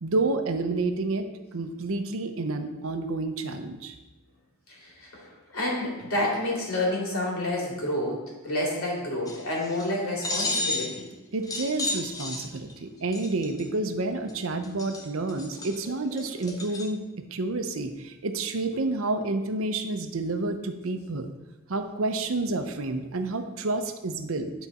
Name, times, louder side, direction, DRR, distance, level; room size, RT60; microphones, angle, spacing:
voice 1, 0.0-3.9 11.3-17.0 17.3-21.3 21.7-24.5, right 2 dB, 70° right, 7 dB, 0.7 m, -29 dB
voice 2, 5.5-11.0, left 1 dB, 80° left, -3 dB, 2.4 m, -29 dB
sound 1, 9.3-9.9 10.2-11.0 11.5-12.7 13.1-13.6 14.3-14.4 14.6-16.9, left 2 dB, 15° left, 0.7 m, -32 dB
10.5 x 4.0 x 4.2 m, 1.2 s
head